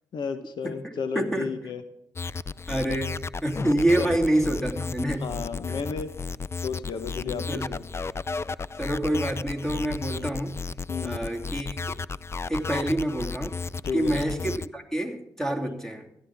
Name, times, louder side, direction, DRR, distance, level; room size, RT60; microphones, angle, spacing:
voice 1, 0.1-1.8 4.0-4.1 5.2-6.1 6.6-7.8 10.9-11.2 13.8-14.1 15.6-15.8, left 5 dB, 70° left, 10 dB, 1.0 m, -32 dB
voice 2, 0.6-1.5 2.7-5.3 5.7-5.8 7.2-7.7 8.8-10.6 11.0-11.8 12.5-13.5 13.9-16.1, right 1 dB, 5° left, 4 dB, 2.9 m, -27 dB
sound 1, 2.2-14.7, left 4 dB, 30° left, 0.5 m, -34 dB
16.5 x 14.0 x 3.6 m, 0.86 s
supercardioid pair, 55°, 8 cm